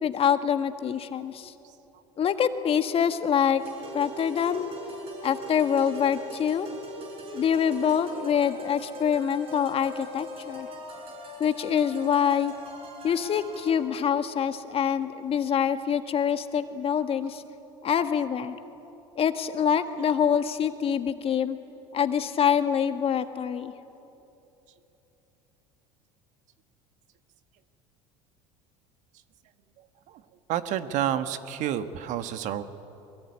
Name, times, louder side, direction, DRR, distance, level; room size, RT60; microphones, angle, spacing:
voice 1, 0.0-1.5 2.2-3.6 3.9-4.7 5.2-6.7 7.3-10.7 11.4-12.5 13.0-17.4 17.8-18.6 19.2-21.6 21.9-23.7, left 8 dB, 40° left, 8 dB, 1.7 m, -25 dB
sound 1, 3.6-13.9, left 1 dB, 40° right, 7.3 m, -41 dB
voice 2, 30.5-32.6, right 10 dB, 60° right, 10 dB, 1.5 m, -29 dB
23.5 x 22.0 x 9.8 m, 3.0 s
hypercardioid pair, 75°, 15 cm